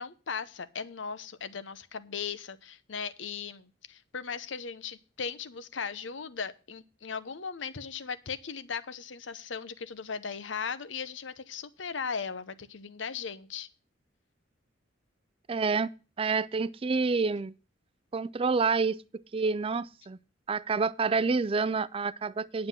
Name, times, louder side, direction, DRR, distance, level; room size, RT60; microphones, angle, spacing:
voice 1, 0.0-13.7, left 6 dB, 80° left, 0.9 m, -38 dB
voice 2, 15.5-15.9 16.2-17.5 18.1-19.0 19.3-20.2 20.5-22.7, right 4 dB, 30° right, 0.4 m, -28 dB
9.8 x 7.7 x 5.5 m
head